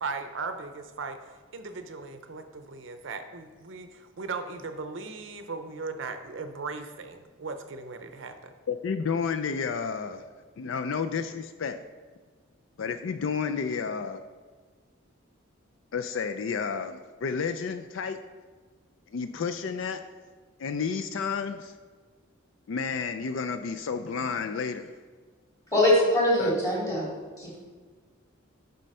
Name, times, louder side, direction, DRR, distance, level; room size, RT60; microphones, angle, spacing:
voice 1, 0.0-8.5, right 4 dB, 65° right, 8 dB, 0.6 m, -38 dB
voice 2, 8.7-10.2 10.6-11.8 12.8-14.2 15.9-18.2 19.1-20.0 20.6-21.7 22.7-24.9 26.4-26.5, left 5 dB, 65° left, 9 dB, 0.4 m, -31 dB
voice 3, 25.7-27.1 27.4-27.6, left 1 dB, 15° left, -6 dB, 2.7 m, -23 dB
7.4 x 5.5 x 5.4 m, 1.4 s
head